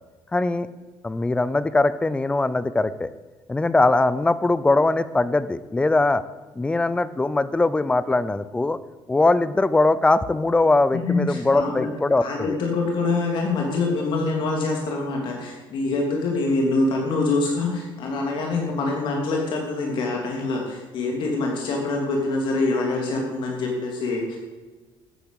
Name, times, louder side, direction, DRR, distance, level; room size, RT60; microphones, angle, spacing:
voice 1, 0.3-0.7 1.0-3.1 3.5-6.2 6.6-8.8 9.1-12.6, left 2 dB, 10° left, 15 dB, 0.6 m, -21 dB
voice 2, 10.9-11.9 12.2-24.4, left 3 dB, 60° left, 0 dB, 3.0 m, -25 dB
13.5 x 9.3 x 8.3 m, 1.3 s
cardioid pair, 160°, 9 cm